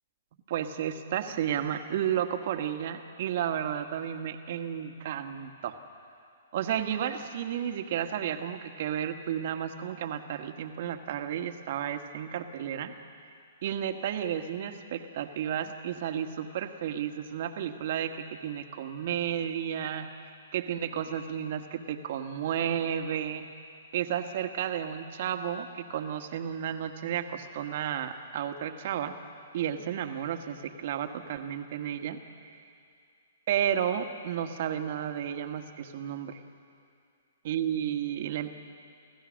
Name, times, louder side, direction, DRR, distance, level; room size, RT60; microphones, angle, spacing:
voice 1, 0.5-5.7 6.5-12.9 13.6-23.4 23.9-29.2 29.5-32.2 32.4-32.5 33.5-36.4 37.4-38.5, right 9 dB, 55° right, 7 dB, 1.4 m, -32 dB
28.5 x 14.5 x 6.4 m, 2.4 s
hypercardioid pair, 125°, 0 cm